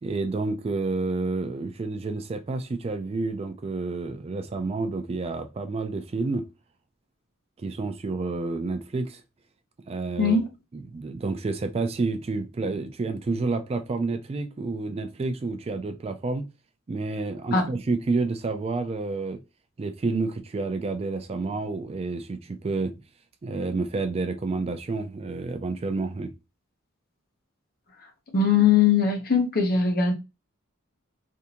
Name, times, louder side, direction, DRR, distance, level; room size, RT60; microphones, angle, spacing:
voice 1, 0.0-6.5 7.6-9.2 9.9-10.4 10.7-16.5 16.9-19.4 19.8-22.9 23.4-26.3, right 3 dB, 30° right, 0.3 m, -29 dB
voice 2, 10.2-10.5 17.5-17.7 28.3-30.1, left 6 dB, 50° left, 0.8 m, -20 dB
3.4 x 2.6 x 2.8 m
head